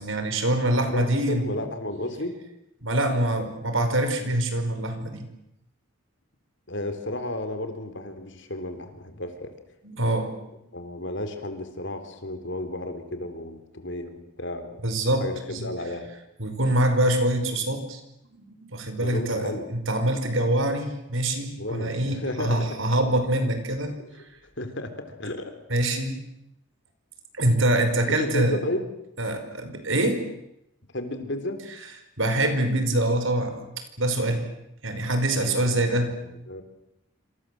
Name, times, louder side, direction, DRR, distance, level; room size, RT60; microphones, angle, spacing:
voice 1, 0.0-1.6 2.8-5.3 9.8-10.4 14.8-15.7 16.4-18.0 18.5-24.0 25.7-26.2 27.3-28.6 29.2-30.3 32.2-33.6 34.0-34.5 34.8-36.1, right 1 dB, 65° right, 8 dB, 5.2 m, -25 dB
voice 2, 0.9-2.4 6.7-9.5 10.7-14.8 15.2-16.1 19.0-19.7 21.6-22.8 24.0-24.1 24.6-25.6 28.0-28.9 30.9-31.6 35.4-36.6, left 1 dB, 55° left, 8 dB, 4.0 m, -33 dB
27.5 x 27.0 x 7.9 m, 0.84 s
head